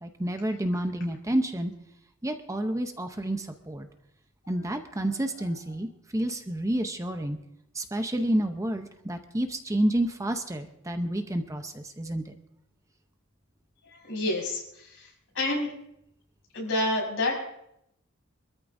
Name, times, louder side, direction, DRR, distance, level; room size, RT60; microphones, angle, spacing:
voice 1, 0.0-1.7 2.2-3.9 4.5-7.4 7.8-12.3, right 1 dB, 15° right, 6 dB, 0.7 m, -29 dB
voice 2, 13.9-15.1 15.4-15.7 16.5-17.4, left 2 dB, 65° left, -1 dB, 5.5 m, -28 dB
24.5 x 13.5 x 2.7 m, 0.78 s
head